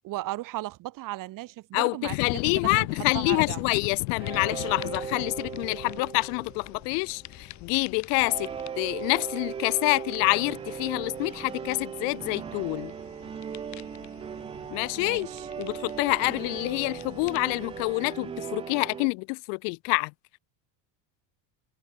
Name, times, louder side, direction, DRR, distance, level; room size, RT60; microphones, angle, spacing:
voice 1, 0.0-2.2 2.4-2.9 3.1-3.7 15.0-15.5, right 17 dB, 40° right, 2.4 m, -36 dB
voice 2, 1.7-8.5 8.8-12.9 14.7-15.3 15.6-20.1, left 40 dB or more, 60° left, 0.9 m, -27 dB
sound 1, 2.0-7.2 7.5-7.6, left 27 dB, 90° left, 2.0 m, -35 dB
sound 2, 3.5-3.8 4.1-19.1, left 15 dB, 35° left, 1.9 m, -50 dB
sound 3, 4.2-7.4 8.2-19.1, right 7 dB, 15° right, 0.4 m, -38 dB
cardioid pair, 170°, 48 cm